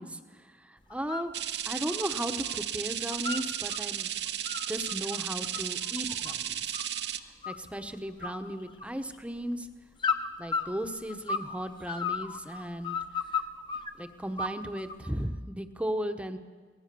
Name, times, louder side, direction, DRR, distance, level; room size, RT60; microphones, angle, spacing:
voice 1, 0.0-1.3 1.7-4.1 4.7-6.6 7.5-9.7 10.4-13.0 14.0-16.4, equal, 5° right, 8 dB, 1.0 m, -36 dB
sound 1, 0.9-1.3 1.7-2.6 2.9-3.8 4.2-7.0 7.4-7.9 8.2-9.2 10.0-11.5 11.8-13.9 14.4-15.1, left 5 dB, 30° left, 1.1 m, -34 dB
sound 2, 1.3-7.2, right 10 dB, 75° right, 0.9 m, -34 dB
24.0 x 18.0 x 6.9 m, 1.5 s
head